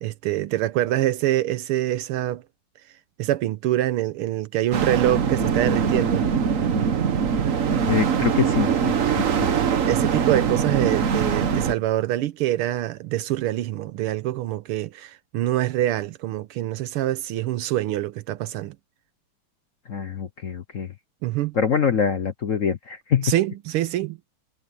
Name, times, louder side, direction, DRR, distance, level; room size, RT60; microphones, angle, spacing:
voice 1, 0.0-2.4 3.2-6.2 9.9-18.7 21.2-21.5 23.2-24.2, right 14 dB, 85° right, 1.6 m, -25 dB
sound 1, 4.7-11.7, right 7 dB, 45° right, 1.2 m, -22 dB
voice 2, 7.9-9.5 19.9-20.9 21.5-23.3, left 7 dB, 55° left, 0.9 m, -24 dB
omnidirectional pair, 2.4 m